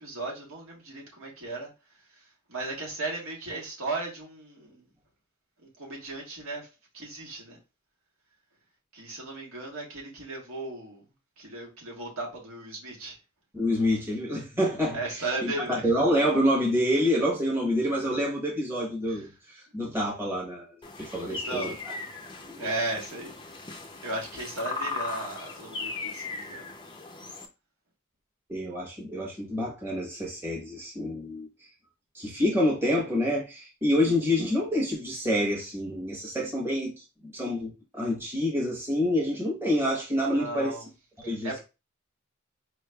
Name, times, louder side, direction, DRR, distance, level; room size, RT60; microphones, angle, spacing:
voice 1, 0.0-1.7 2.1-4.9 5.6-6.7 6.9-7.6 8.9-11.0 11.4-13.2 14.9-15.8 19.1-19.3 21.2-21.7 22.6-23.4 23.7-26.7 40.3-40.9 41.4-41.6, right 2 dB, 80° right, 1.5 m, -36 dB
voice 2, 13.5-21.7 22.5-22.7 28.5-31.5 32.1-40.7 41.2-41.6, left 1 dB, 10° right, 1.0 m, -27 dB
sound 1, 20.8-27.5, left 3 dB, 20° left, 0.4 m, -38 dB
4.8 x 3.2 x 2.2 m
head